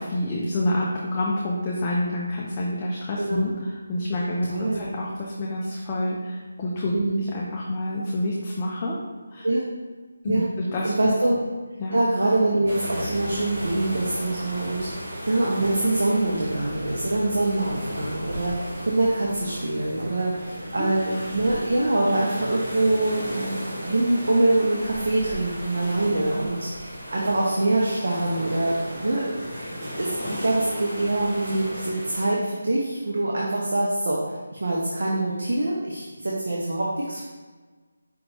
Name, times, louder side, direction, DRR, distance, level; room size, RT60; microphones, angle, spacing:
voice 1, 0.0-9.0 9.3-9.5 10.2-11.1 11.8-12.0 20.8-20.9, left 1 dB, 15° left, -5 dB, 0.4 m, -28 dB
voice 2, 3.2-3.5 4.5-5.0 6.9-7.2 9.4-9.6 10.3-10.5 10.8-11.4 11.9-34.2 34.6-37.2, right 2 dB, 65° right, -4 dB, 0.7 m, -24 dB
sound 1, 12.7-32.3, equal, 30° right, 1.2 m, -35 dB
5.0 x 3.0 x 3.2 m, 1.4 s
figure-of-eight pair, 175°, 0 cm